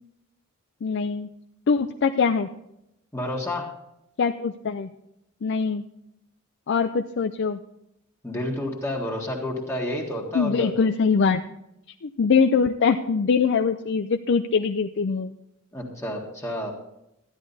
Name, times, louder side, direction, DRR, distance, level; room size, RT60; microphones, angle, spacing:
voice 1, 0.8-1.3 1.7-2.5 4.2-4.9 5.4-5.8 6.7-7.6 10.3-11.4 12.0-15.3, left 5 dB, 55° left, 7 dB, 0.4 m, -22 dB
voice 2, 3.1-3.7 8.2-10.7 15.7-16.7, left 1 dB, 15° left, -1 dB, 1.7 m, -30 dB
13.0 x 10.5 x 4.1 m, 0.83 s
head